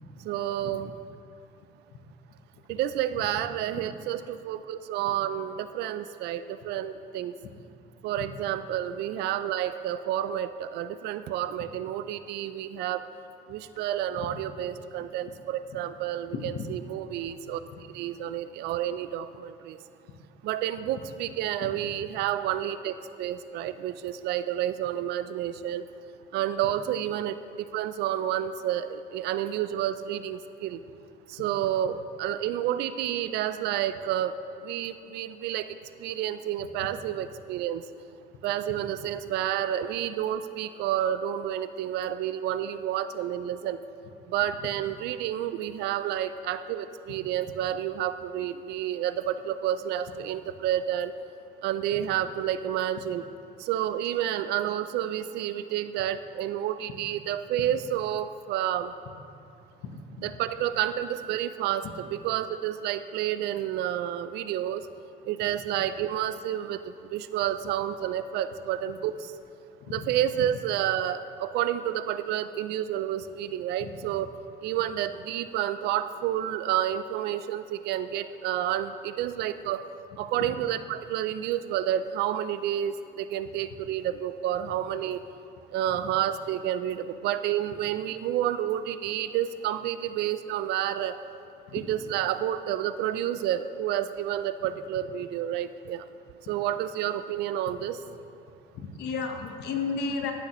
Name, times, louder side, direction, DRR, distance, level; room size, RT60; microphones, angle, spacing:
voice 1, 0.2-0.9 2.7-7.3 8.0-13.1 13.5-17.6 17.9-19.8 20.4-25.8 26.3-30.8 31.3-34.4 34.6-35.7 36.0-37.8 38.4-43.8 44.3-51.1 51.6-53.2 53.6-58.9 60.2-61.9 62.1-64.9 65.3-69.2 69.9-74.3 74.6-79.9 80.2-85.2 85.7-91.2 91.7-96.0 96.5-98.0, right 11 dB, 80° right, 13 dB, 0.4 m, -30 dB
voice 2, 16.3-16.6 21.6-21.7 59.8-60.3 69.8-69.9 73.8-73.9 80.4-80.5 91.7-91.8 98.7-100.3, left 5 dB, 80° left, 4 dB, 1.0 m, -33 dB
15.0 x 6.7 x 3.0 m, 2.6 s
cardioid pair, 110°, 17 cm